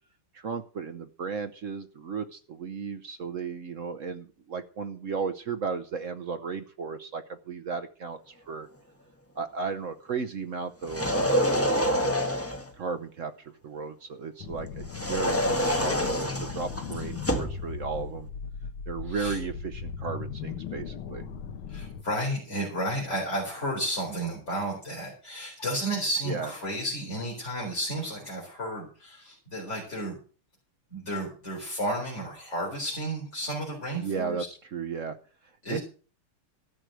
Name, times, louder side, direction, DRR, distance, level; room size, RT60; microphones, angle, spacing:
voice 1, 0.3-8.7 9.4-12.1 12.8-18.3 18.9-21.2 26.3-26.5 33.9-34.4 34.7-35.2 35.7-35.8, right 5 dB, 70° right, 8 dB, 0.7 m, -35 dB
sound 1, 10.8-12.7 14.9-17.6, equal, 10° left, 1.2 m, -27 dB
sound 2, 14.4-22.0, left 6 dB, 75° left, 1.8 m, -38 dB
voice 2, 19.0-19.4 21.7-30.2 30.9-34.5 35.6-35.8, right 1 dB, 30° left, -2 dB, 4.4 m, -32 dB
13.5 x 6.2 x 8.0 m, 0.40 s
omnidirectional pair, 2.3 m